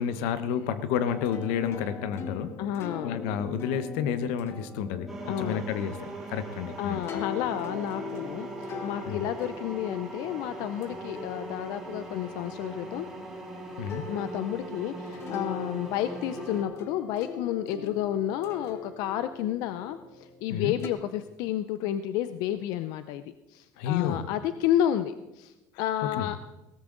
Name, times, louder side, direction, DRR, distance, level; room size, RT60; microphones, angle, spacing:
voice 1, 0.0-2.5 3.0-7.1 9.1-9.3 13.8-14.0 20.5-20.7 23.8-24.2 26.2-26.3, left 8 dB, 90° left, 12 dB, 1.1 m, -30 dB
sound 1, 1.1-13.4 13.9-20.9, left 4 dB, 35° left, 1.2 m, -41 dB
voice 2, 2.6-3.2 5.3-5.6 6.8-13.1 14.1-23.2 23.5-26.4, left 11 dB, 65° left, 11 dB, 0.6 m, -31 dB
sound 2, 5.1-16.6, right 2 dB, 5° right, 3.1 m, -40 dB
17.5 x 13.5 x 3.9 m, 0.98 s
cardioid pair, 160°, 7 cm